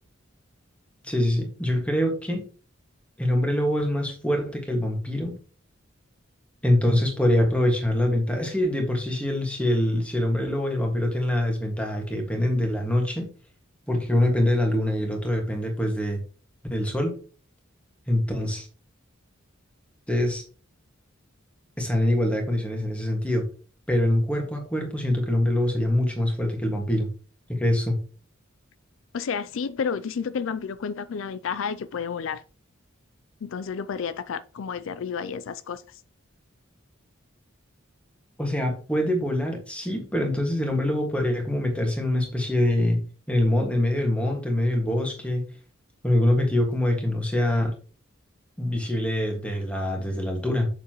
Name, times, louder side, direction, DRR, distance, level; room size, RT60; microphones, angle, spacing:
voice 1, 1.0-2.4 3.2-5.4 6.6-13.3 13.9-16.2 16.7-17.1 18.1-18.7 20.1-20.4 21.8-23.4 23.9-27.1 27.5-28.0 38.4-45.5 46.0-47.7 48.6-50.7, left 1 dB, 5° left, 1.8 m, -24 dB
voice 2, 29.1-32.4 33.4-35.8, left 6 dB, 75° left, 0.4 m, -31 dB
7.0 x 6.7 x 3.0 m
head